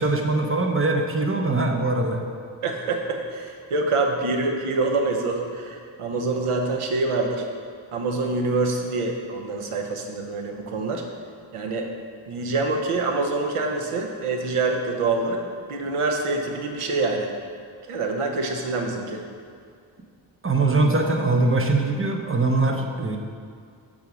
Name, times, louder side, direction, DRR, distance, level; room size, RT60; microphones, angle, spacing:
voice 1, 0.0-2.2 20.4-23.2, right 2 dB, 25° right, 3 dB, 0.8 m, -22 dB
voice 2, 2.6-7.4 7.9-11.0 11.5-11.9 12.3-15.4 15.7-17.3 17.9-19.2, right 3 dB, 90° right, 2 dB, 0.9 m, -26 dB
6.7 x 3.6 x 6.0 m, 2.3 s
cardioid pair, 60°, 49 cm